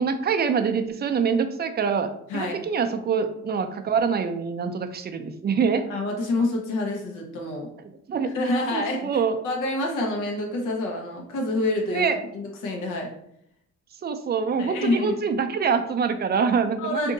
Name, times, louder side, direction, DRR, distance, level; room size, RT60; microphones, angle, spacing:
voice 1, 0.0-5.9 8.1-8.3 8.7-9.4 11.9-12.2 14.0-17.1, right 6 dB, 35° right, 8 dB, 0.4 m, -25 dB
voice 2, 2.3-2.6 5.9-7.7 8.2-12.1 12.3-13.1 14.6-15.2 16.8-17.1, left 2 dB, 80° left, 1 dB, 1.0 m, -27 dB
2.7 x 2.5 x 3.9 m, 0.76 s
cardioid pair, 90°, 30 cm